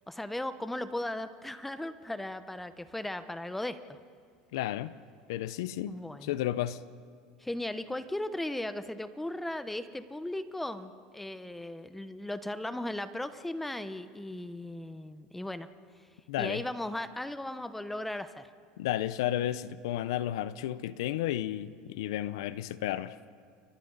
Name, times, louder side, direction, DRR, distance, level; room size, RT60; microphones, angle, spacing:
voice 1, 0.1-4.0 5.9-6.3 7.4-15.7 16.0-16.1 16.4-18.5, left 1 dB, 5° left, 1.0 m, -37 dB
voice 2, 4.5-5.0 5.3-5.9 6.2-6.8 16.3-16.6 18.8-23.2, left 13 dB, 80° left, 0.7 m, -32 dB
29.5 x 23.5 x 4.1 m
supercardioid pair, 105°, 2 cm